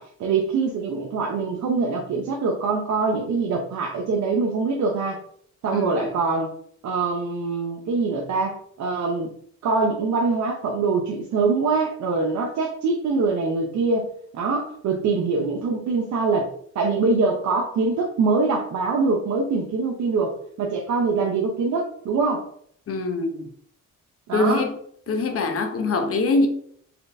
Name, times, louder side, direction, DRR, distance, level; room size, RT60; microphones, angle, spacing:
voice 1, 0.0-5.2 5.6-6.5 6.8-9.3 9.6-16.5 16.7-20.3 20.6-22.5 24.3-24.7, right 4 dB, 65° right, 0.7 m, -24 dB
voice 2, 5.7-6.1 22.9-23.5 24.3-24.8 25.1-26.5, left 3 dB, 50° left, 0.8 m, -23 dB
4.3 x 3.1 x 2.6 m
cardioid pair, 90°, 30 cm